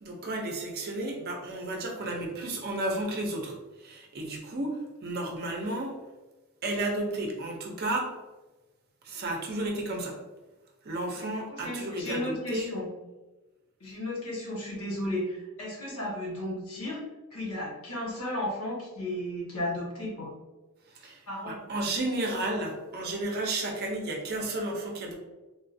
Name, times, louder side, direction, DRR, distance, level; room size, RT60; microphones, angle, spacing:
voice 1, 0.0-3.6 3.8-5.9 6.6-8.1 9.0-10.2 10.8-12.7 20.9-25.1, right 2 dB, 45° right, 1 dB, 0.6 m, -32 dB
voice 2, 11.1-12.9 13.8-17.0 17.3-20.3 21.3-21.6, left 1 dB, 70° left, -4 dB, 1.2 m, -34 dB
3.6 x 2.4 x 2.6 m, 1.2 s
head